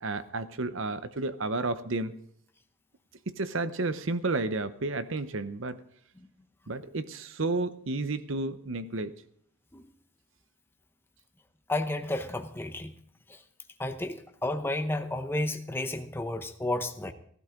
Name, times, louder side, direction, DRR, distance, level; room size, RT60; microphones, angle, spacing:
voice 1, 0.0-2.2 3.3-5.8 6.7-9.1, right 3 dB, 60° right, 12 dB, 0.8 m, -31 dB
voice 2, 11.7-12.9 13.3-13.4 13.8-17.1, left 1 dB, 10° left, 7 dB, 0.7 m, -32 dB
16.5 x 12.0 x 3.8 m, 0.66 s
head